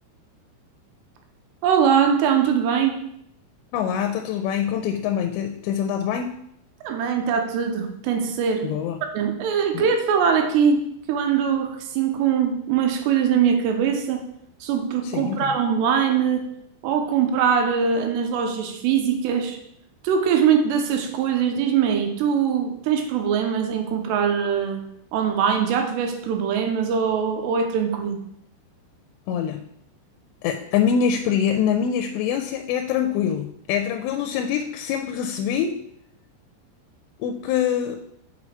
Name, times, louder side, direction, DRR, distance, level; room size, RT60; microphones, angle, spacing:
voice 1, 1.6-3.1 6.8-8.7 9.1-14.2 14.6-16.4 16.8-19.6 20.0-24.8 25.1-28.2, right 7 dB, 90° right, 4 dB, 2.9 m, -22 dB
voice 2, 3.7-6.3 8.6-9.0 9.7-9.9 15.0-15.4 29.3-29.7 30.4-35.8 37.2-38.0, left 8 dB, 90° left, 5 dB, 2.8 m, -24 dB
6.1 x 5.9 x 4.4 m, 0.73 s
omnidirectional pair, 5.0 m